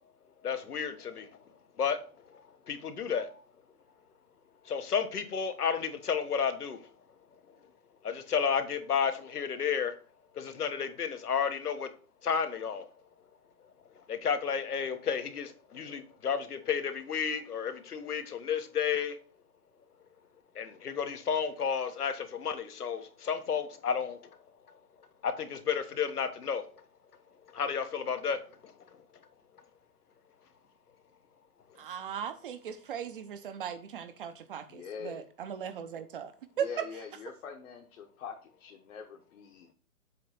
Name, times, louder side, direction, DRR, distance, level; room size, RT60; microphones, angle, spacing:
voice 1, 0.4-1.3 1.8-2.0 2.3-2.4 2.7-3.4 4.7-6.8 8.0-9.9 10.3-11.9 12.2-12.9 14.1-19.2 20.5-24.2 25.2-26.6 27.5-28.7, left 7 dB, 85° left, 1.3 m, -32 dB
voice 2, 31.8-36.3 36.6-36.7, right 8 dB, 35° right, 0.7 m, -38 dB
voice 3, 34.7-35.2 36.6-39.7, left 6 dB, 55° left, 1.2 m, -44 dB
7.7 x 3.1 x 5.7 m
hypercardioid pair, 140°, 45 cm